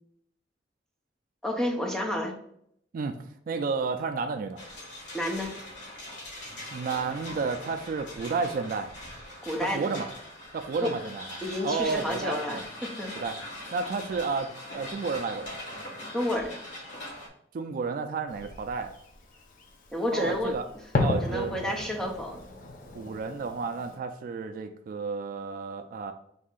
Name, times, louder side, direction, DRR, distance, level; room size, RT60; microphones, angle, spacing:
voice 1, 1.4-2.3 5.1-5.5 9.4-9.9 10.8-10.9 11.4-13.1 16.1-16.5 19.9-20.5 21.2-22.4, left 1 dB, 5° left, 1 dB, 0.6 m, -30 dB
voice 2, 3.5-4.6 6.7-8.9 9.6-10.1 10.5-12.6 13.1-13.4 13.7-15.6 17.5-18.9 20.1-20.7 21.0-21.7 22.9-26.1, right 4 dB, 50° right, 8 dB, 0.3 m, -31 dB
sound 1, 4.6-17.3, left 1 dB, 80° left, 1.6 m, -41 dB
Fireworks, 18.3-24.0, left 2 dB, 50° left, 0.6 m, -34 dB
4.1 x 2.7 x 3.7 m, 0.71 s
head